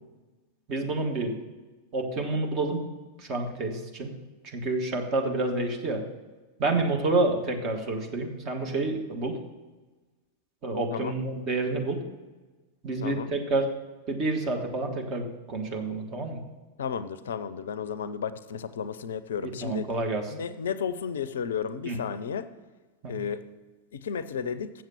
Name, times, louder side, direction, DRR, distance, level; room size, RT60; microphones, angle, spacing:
voice 1, 0.7-1.4 1.9-2.8 3.2-4.1 4.4-6.0 6.6-9.4 10.6-12.0 12.8-13.7 14.1-16.4 19.4-20.3 21.8-22.0 23.0-23.1, right 2 dB, 35° right, 3 dB, 1.4 m, -29 dB
voice 2, 13.0-13.3 16.8-19.9 20.3-22.5 23.1-23.4 24.0-24.7, left 7 dB, 65° left, 14 dB, 0.5 m, -33 dB
7.5 x 7.3 x 7.1 m, 1.2 s
figure-of-eight pair, 90°, 0 cm